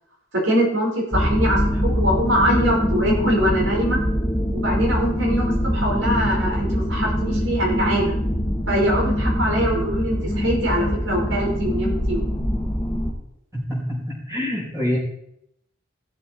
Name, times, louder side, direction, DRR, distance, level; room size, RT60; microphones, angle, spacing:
voice 1, 0.3-4.0 4.5-8.2 8.7-12.3, equal, 80° right, -2 dB, 4.8 m, -23 dB
sound 1, 1.1-13.1, equal, 10° left, 2.7 m, -23 dB
voice 2, 13.5-15.0, left 1 dB, 15° right, -4 dB, 4.8 m, -26 dB
16.0 x 7.6 x 4.5 m, 0.77 s
head